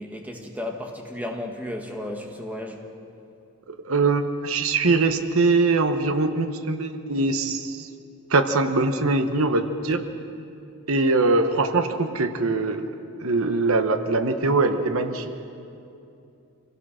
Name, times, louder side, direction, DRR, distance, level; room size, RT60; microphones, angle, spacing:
voice 1, 0.0-2.9, left 1 dB, 5° right, 2 dB, 1.5 m, -34 dB
voice 2, 3.7-7.9 8.3-10.0 10.9-12.9 13.2-15.4, right 3 dB, 70° right, 8 dB, 1.0 m, -22 dB
26.0 x 17.0 x 6.3 m, 2.7 s
head